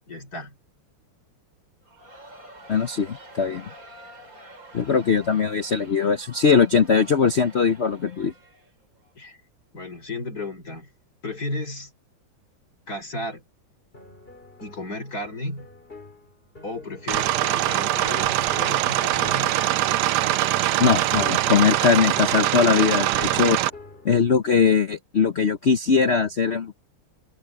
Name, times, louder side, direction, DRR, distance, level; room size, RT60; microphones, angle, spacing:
voice 1, 0.1-0.6 9.2-9.4 9.7-10.9 11.2-11.9 12.9-13.4 14.6-15.7 16.6-19.6, left 2 dB, 45° left, 6.2 m, -34 dB
Crowd, 1.8-9.1, right 1 dB, 40° right, 4.3 m, -47 dB
voice 2, 2.7-3.6 4.7-8.3 20.8-23.6 24.0-26.7, left 6 dB, 70° left, 0.6 m, -20 dB
sound 1, 13.9-24.4, left 2 dB, 25° left, 4.0 m, -46 dB
sound 2, 17.1-23.7, right 14 dB, 75° right, 0.9 m, -23 dB
omnidirectional pair, 2.4 m